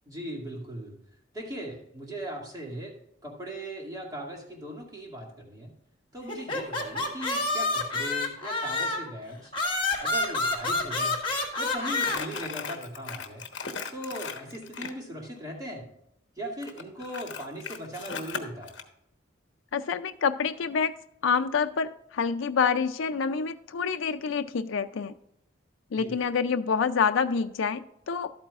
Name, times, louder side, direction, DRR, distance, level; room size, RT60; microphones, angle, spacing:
voice 1, 0.1-1.0 1.3-2.9 3.2-5.7 6.1-9.5 10.0-11.2 11.6-13.4 13.9-15.9 16.4-18.7 25.9-26.1, right 1 dB, 20° right, -1 dB, 2.2 m, -38 dB
sound 1, 6.3-9.1 9.5-12.2, left 2 dB, 25° left, 1.4 m, -28 dB
Crumpling crinkling, 11.9-15.0 16.6-18.8, left 5 dB, 60° left, 1.0 m, -37 dB
voice 2, 19.7-21.0 21.2-25.1 25.9-28.3, left 6 dB, 80° left, 8 dB, 0.4 m, -27 dB
12.0 x 8.8 x 2.4 m, 0.76 s
head